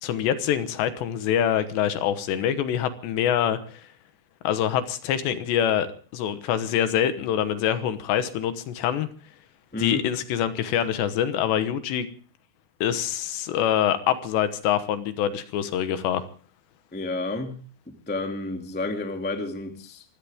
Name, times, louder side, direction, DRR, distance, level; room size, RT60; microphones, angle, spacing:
voice 1, 0.0-3.9 4.4-5.9 6.1-9.1 9.8-12.1 12.8-16.2, left 10 dB, 75° left, 11 dB, 3.3 m, -25 dB
voice 2, 16.9-17.6 17.9-20.0, left 2 dB, 5° left, 4 dB, 0.9 m, -31 dB
25.0 x 16.0 x 3.6 m, 0.39 s
omnidirectional pair, 5.3 m